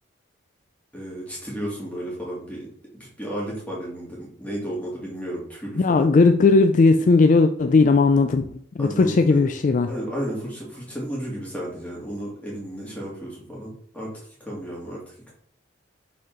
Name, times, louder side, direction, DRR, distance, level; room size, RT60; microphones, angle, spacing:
voice 1, 0.9-2.7 3.0-6.1 8.8-9.5 9.9-14.1 14.4-15.3, equal, 5° left, -5 dB, 2.3 m, -33 dB
voice 2, 5.8-9.9, left 3 dB, 40° left, 8 dB, 0.3 m, -17 dB
6.2 x 4.2 x 3.9 m, 0.67 s
head